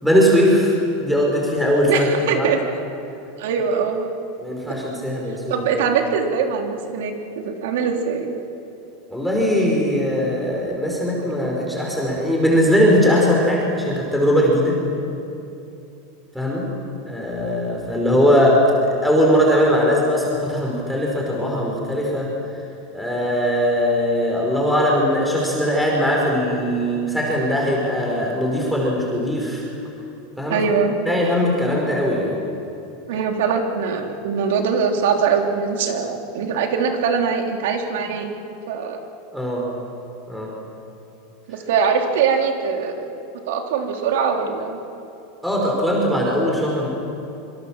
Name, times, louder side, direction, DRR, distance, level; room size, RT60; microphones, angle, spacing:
voice 1, 0.0-2.1 2.3-2.5 4.4-5.6 9.1-14.8 16.3-16.7 17.1-22.3 22.9-29.6 30.4-30.6 31.1-32.4 39.3-39.6 40.3-40.5 45.4-46.9, equal, ahead, -3 dB, 4.9 m, -20 dB
voice 2, 1.9-2.6 3.4-4.1 5.5-8.3 30.5-31.0 33.1-38.3 38.7-39.0 41.5-43.1 43.5-44.8, right 6 dB, 75° right, 3 dB, 3.6 m, -22 dB
26.0 x 25.0 x 7.4 m, 2.8 s
supercardioid pair, 155°, 0 cm